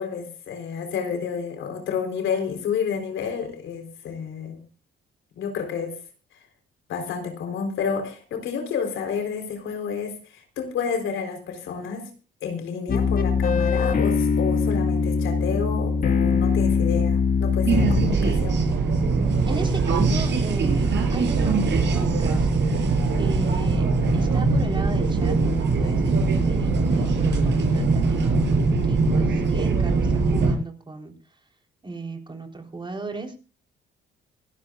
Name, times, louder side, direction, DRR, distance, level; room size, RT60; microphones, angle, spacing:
voice 1, 0.0-4.6 5.4-6.0 6.9-12.1 12.4-18.6, left 6 dB, 80° left, 3.9 m, -30 dB
sound 1, 12.9-18.1, left 5 dB, 45° left, 2.1 m, -22 dB
sound 2, 17.6-30.5, right 3 dB, 65° right, 6.1 m, -21 dB
voice 2, 19.5-22.5 23.2-23.8 24.1-31.1 31.8-33.3, right 3 dB, 25° right, 3.9 m, -36 dB
26.5 x 12.5 x 2.5 m
cardioid pair, 90°, 20 cm